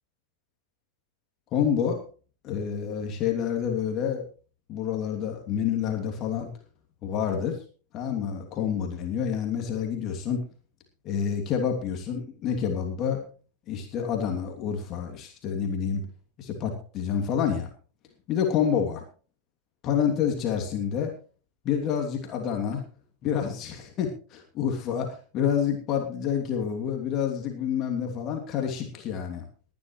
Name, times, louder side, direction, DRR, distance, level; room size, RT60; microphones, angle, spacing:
voice 1, 1.5-2.0 2.4-4.2 4.7-6.5 7.0-7.6 7.9-10.4 11.0-13.2 13.7-16.1 16.4-17.7 18.3-19.0 19.8-21.1 21.6-22.9 23.2-29.4, left 8 dB, 35° left, 3 dB, 2.9 m, -28 dB
21.0 x 11.0 x 3.2 m, 0.38 s
figure-of-eight pair, 90°, 0 cm